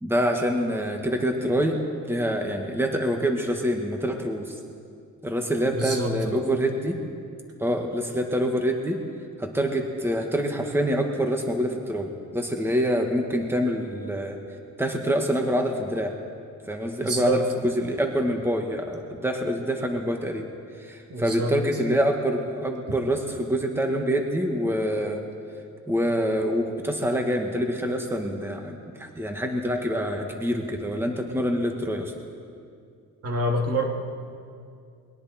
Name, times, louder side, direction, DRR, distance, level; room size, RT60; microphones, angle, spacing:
voice 1, 0.0-4.6 5.2-7.0 7.6-9.0 9.4-14.4 14.8-16.1 16.7-20.5 20.8-25.2 25.9-32.1, equal, 10° right, 3 dB, 1.9 m, -26 dB
voice 2, 5.7-6.4 17.0-17.4 21.1-21.6 33.2-33.8, right 1 dB, 50° right, 1 dB, 2.8 m, -27 dB
28.5 x 22.0 x 4.5 m, 2.4 s
cardioid pair, 90°, 30 cm